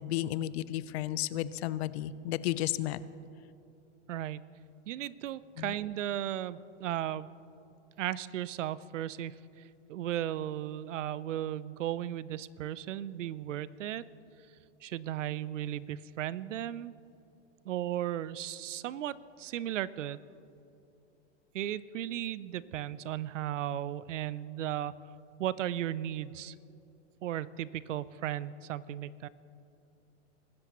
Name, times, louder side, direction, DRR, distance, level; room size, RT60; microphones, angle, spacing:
voice 1, 0.0-3.0 5.6-5.7, left 13 dB, 60° left, 16 dB, 0.6 m, -33 dB
voice 2, 4.1-4.5 4.9-7.3 8.0-9.4 9.9-14.0 14.8-16.9 17.7-20.2 21.5-25.0 25.4-26.5 27.2-29.3, right 12 dB, 85° right, 19 dB, 0.6 m, -35 dB
24.0 x 13.0 x 3.0 m, 2.8 s
hypercardioid pair, 125°, 36 cm